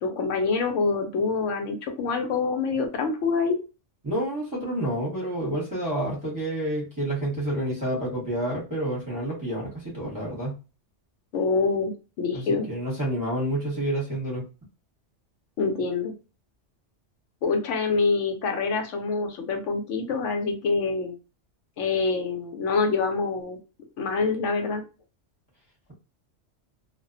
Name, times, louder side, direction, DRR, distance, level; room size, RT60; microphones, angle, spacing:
voice 1, 0.0-3.6 11.3-12.7 15.6-16.1 17.4-21.1 21.8-23.6 24.0-24.8, left 4 dB, 85° left, 5 dB, 0.9 m, -26 dB
voice 2, 4.0-10.5 12.3-14.5, right 1 dB, 20° right, -7 dB, 0.9 m, -29 dB
2.3 x 2.1 x 2.5 m, 0.31 s
omnidirectional pair, 1.2 m